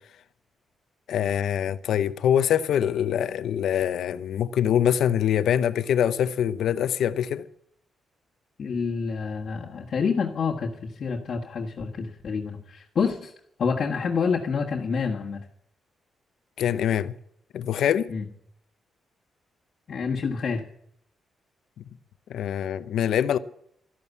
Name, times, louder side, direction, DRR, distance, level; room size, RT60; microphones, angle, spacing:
voice 1, 1.1-7.4 16.6-17.1 17.5-18.1 22.3-23.4, left 9 dB, 75° left, 0.8 m, -24 dB
voice 2, 8.6-13.3 13.6-15.5 18.1-18.2 19.9-20.6, left 5 dB, 50° left, 1.6 m, -28 dB
13.0 x 12.5 x 8.4 m
cardioid pair, 130°, 0 cm